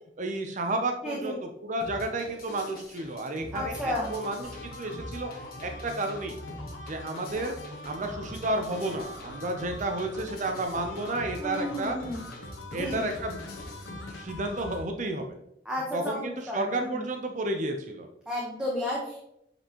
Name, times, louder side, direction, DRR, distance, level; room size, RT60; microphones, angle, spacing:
voice 1, 0.2-5.3 5.6-6.4 6.9-7.5 7.8-12.0 12.7-13.4 14.1-15.4 15.9-18.1, right 2 dB, 40° right, 5 dB, 0.6 m, -32 dB
voice 2, 1.0-1.3 3.5-4.2 11.4-12.2 12.7-13.1 15.6-17.0 18.3-19.2, left 1 dB, 5° right, -5 dB, 1.0 m, -33 dB
sound 1, 1.8-14.2, left 1 dB, 50° left, 1.2 m, -45 dB
sound 2, 3.6-14.8, left 1 dB, 80° left, 1.1 m, -43 dB
7.9 x 4.3 x 2.9 m, 0.82 s
head